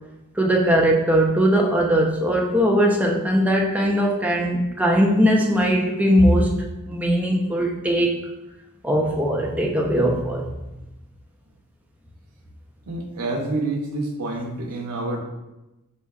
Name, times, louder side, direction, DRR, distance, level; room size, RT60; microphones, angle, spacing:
voice 1, 0.4-6.5 6.9-8.1 8.8-10.4, equal, 5° right, 0 dB, 0.3 m, -20 dB
voice 2, 12.9-15.2, right 2 dB, 85° right, -1 dB, 0.6 m, -27 dB
4.4 x 2.6 x 2.3 m, 0.97 s
head